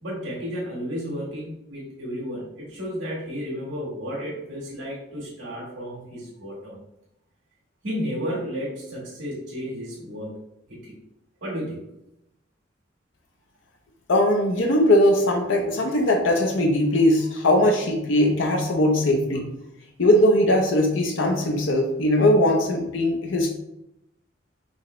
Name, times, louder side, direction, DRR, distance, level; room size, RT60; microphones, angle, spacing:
voice 1, 0.0-6.8 7.8-10.3 10.7-10.9 11.4-11.8 17.2-17.3, equal, 75° right, -6 dB, 1.6 m, -32 dB
voice 2, 14.1-19.5 20.0-23.5, left 1 dB, 85° left, 2 dB, 0.7 m, -20 dB
5.3 x 2.9 x 3.1 m, 0.84 s
head